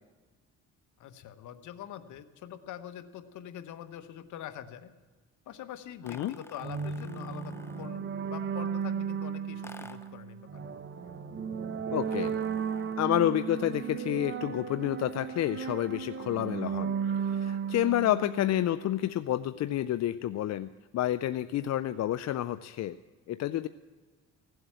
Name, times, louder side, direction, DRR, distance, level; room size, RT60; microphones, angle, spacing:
voice 1, 1.0-4.9 5.5-10.7, left 10 dB, 75° left, 10 dB, 1.0 m, -44 dB
sound 1, 6.0-8.0 9.6-10.2 12.0-13.1, left 2 dB, 10° left, 0.8 m, -51 dB
sound 2, 6.6-19.1, right 6 dB, 40° right, 0.9 m, -35 dB
voice 2, 11.9-12.3 13.0-23.0 23.3-23.7, left 12 dB, 60° left, 13 dB, 0.5 m, -29 dB
16.5 x 8.0 x 9.0 m, 1.3 s
cardioid pair, 90°, 30 cm